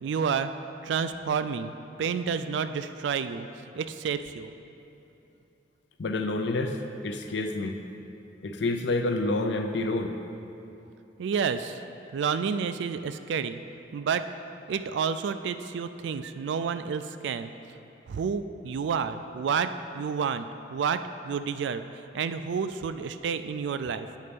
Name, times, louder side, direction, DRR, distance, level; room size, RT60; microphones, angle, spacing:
voice 1, 0.0-0.5 0.8-1.7 2.0-3.5 3.8-4.5 11.2-11.8 12.1-13.6 13.9-14.3 14.7-17.5 18.1-24.1, right 6 dB, 75° right, 11 dB, 0.3 m, -30 dB
voice 2, 6.0-7.8 8.4-10.1, left 2 dB, 70° left, 6 dB, 0.5 m, -28 dB
8.3 x 4.3 x 5.1 m, 2.9 s
head